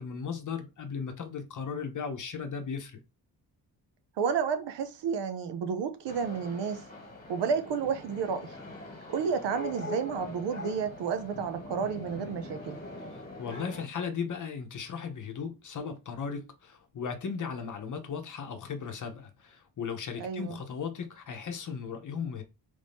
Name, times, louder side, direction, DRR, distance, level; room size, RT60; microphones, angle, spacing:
voice 1, 0.0-3.0 13.1-22.4, left 6 dB, 45° left, 0.7 m, -36 dB
voice 2, 4.2-6.8 7.3-8.5 9.1-12.8 20.2-20.6, right 6 dB, 75° right, 0.6 m, -31 dB
sound 1, 6.1-13.8, left 2 dB, 20° left, 1.4 m, -43 dB
3.2 x 2.6 x 3.5 m
cardioid pair, 100°, 42 cm